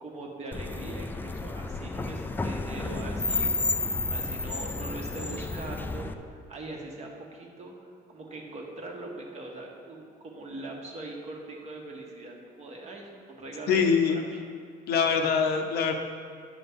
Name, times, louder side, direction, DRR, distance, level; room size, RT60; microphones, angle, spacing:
voice 1, 0.0-3.7 4.1-13.8 14.1-14.4, right 2 dB, 40° right, 0 dB, 1.3 m, -41 dB
sound 1, 0.5-6.1, left 3 dB, 10° left, 0.3 m, -31 dB
voice 2, 13.7-14.2 14.9-15.9, left 6 dB, 70° left, 4 dB, 0.7 m, -23 dB
8.9 x 6.1 x 3.5 m, 2.1 s
cardioid pair, 110°, 17 cm